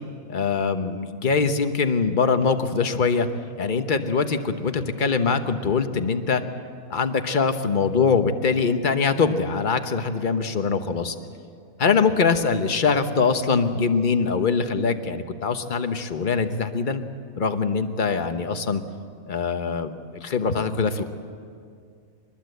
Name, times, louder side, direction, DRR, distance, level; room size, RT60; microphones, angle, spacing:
voice 1, 0.3-3.3 3.6-6.4 6.9-11.1 11.8-17.0 17.4-18.8 19.3-21.1, left 5 dB, 40° left, 8 dB, 1.1 m, -23 dB
23.5 x 21.0 x 7.9 m, 2.3 s
omnidirectional pair, 1.5 m